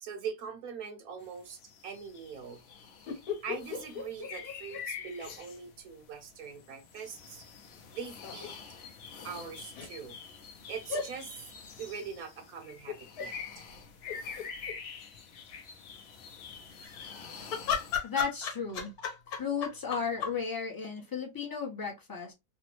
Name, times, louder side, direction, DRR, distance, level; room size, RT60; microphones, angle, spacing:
voice 1, 0.0-2.6 3.1-7.4 7.9-8.5 9.2-10.1 10.7-11.4 11.8-13.7, right 6 dB, 65° right, 1.2 m, -42 dB
sound 1, 1.2-18.0, left 6 dB, 85° left, 0.5 m, -46 dB
sound 2, 3.1-5.3 5.6-5.7 7.8-8.5 9.7-9.9 10.9-11.1 12.9-13.3 13.8-13.9 14.0-14.8 16.7-20.4, left 6 dB, 65° left, 1.3 m, -36 dB
voice 2, 18.0-18.9 19.4-22.3, left 6 dB, 25° left, 0.4 m, -34 dB
3.4 x 2.0 x 2.9 m
omnidirectional pair, 1.8 m